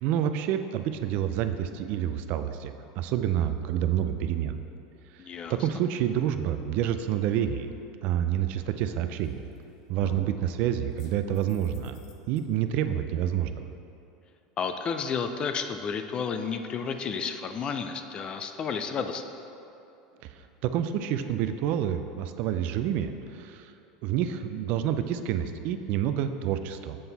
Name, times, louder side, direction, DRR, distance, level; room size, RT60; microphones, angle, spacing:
voice 1, 0.0-4.6 5.1-5.2 5.5-7.7 8.0-9.4 9.9-12.0 12.3-13.6 20.3-23.7 24.0-27.0, right 10 dB, 55° right, 9 dB, 0.4 m, -28 dB
voice 2, 5.2-5.6 14.6-19.2, left 6 dB, 30° left, 7 dB, 0.4 m, -31 dB
sound 1, 9.2-9.6 10.0-10.4 11.0-12.4, left 7 dB, 75° left, 0.8 m, -46 dB
7.6 x 5.8 x 4.0 m, 2.8 s
supercardioid pair, 125°, 3 cm